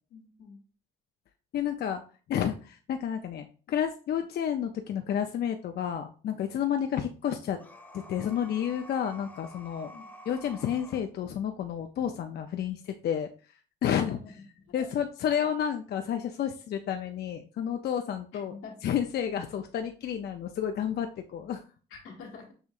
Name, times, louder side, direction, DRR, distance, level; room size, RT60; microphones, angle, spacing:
voice 1, 0.1-0.6 9.9-10.1 14.1-14.3 14.6-14.9 18.4-18.7 21.9-22.5, left 5 dB, 85° left, 0 dB, 1.4 m, -46 dB
voice 2, 1.5-2.0 2.3-7.6 7.9-9.9 10.3-13.3 13.8-14.2 14.7-18.5 18.8-21.6, left 9 dB, 55° left, 6 dB, 0.4 m, -30 dB
sound 1, 7.6-11.0, equal, 10° left, 0.9 m, -49 dB
6.3 x 2.6 x 2.4 m, 0.38 s
cardioid pair, 90°, 20 cm